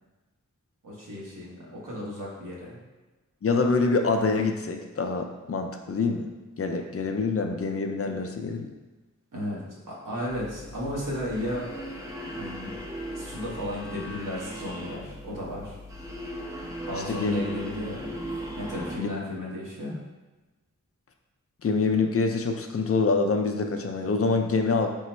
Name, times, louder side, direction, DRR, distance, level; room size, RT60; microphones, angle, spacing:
voice 1, 0.8-2.8 9.3-11.9 12.2-12.8 13.1-15.8 16.9-18.1 18.6-20.0, left 1 dB, 80° right, -5 dB, 1.0 m, -34 dB
voice 2, 3.4-6.3 6.6-8.7 17.1-17.4 21.6-24.9, left 4 dB, 45° left, 4 dB, 0.4 m, -25 dB
sound 1, 10.3-19.0, equal, 10° right, 0.6 m, -38 dB
3.8 x 2.0 x 4.3 m, 1.2 s
wide cardioid pair, 60°, 31 cm